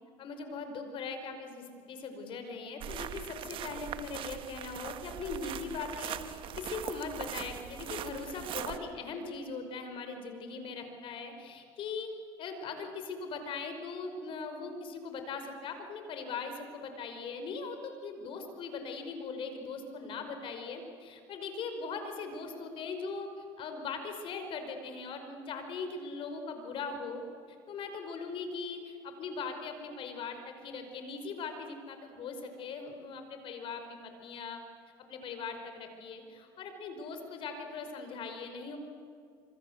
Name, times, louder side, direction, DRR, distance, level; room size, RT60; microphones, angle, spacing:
voice 1, 0.2-12.1 12.4-34.6 35.1-38.8, left 4 dB, 55° left, 6 dB, 5.4 m, -40 dB
sound 1, 2.8-8.8, right 10 dB, 55° right, 1.6 m, -41 dB
26.5 x 25.5 x 8.2 m, 2.4 s
supercardioid pair, 105°, 11 cm